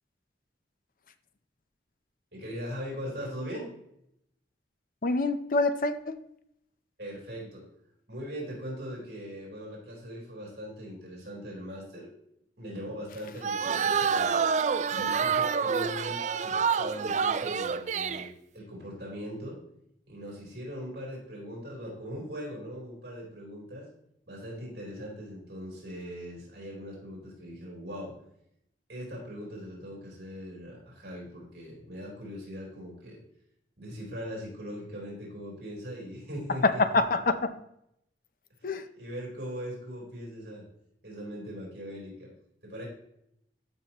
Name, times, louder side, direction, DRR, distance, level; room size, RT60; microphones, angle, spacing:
voice 1, 2.3-3.7 7.0-7.7 8.1-12.1 12.6-14.4 14.9-19.6 20.1-23.9 24.3-28.1 28.9-33.2 33.8-37.0 38.6-40.7 41.0-42.3 42.6-42.9, equal, 60° right, -3 dB, 3.7 m, -40 dB
voice 2, 5.0-6.1 36.6-37.5 38.6-38.8, left 3 dB, 50° left, 11 dB, 0.6 m, -26 dB
sound 1, 13.4-18.3, right 6 dB, 40° right, 0.4 m, -27 dB
13.5 x 5.7 x 2.9 m, 0.77 s
head